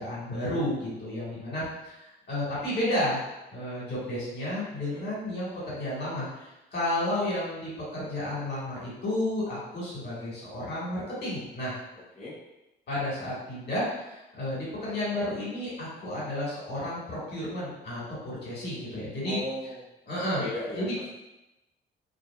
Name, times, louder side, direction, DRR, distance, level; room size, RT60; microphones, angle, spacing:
voice 1, 0.0-2.0 2.3-3.2 3.5-11.7 12.9-19.4 20.1-20.4 20.8-20.9, left 1 dB, 55° left, -7 dB, 1.5 m, -32 dB
voice 2, 4.7-5.0 11.9-12.3 19.2-19.8 20.4-21.1, left 1 dB, 35° left, -10 dB, 0.9 m, -37 dB
2.8 x 2.5 x 2.3 m, 0.96 s
cardioid pair, 90°, 20 cm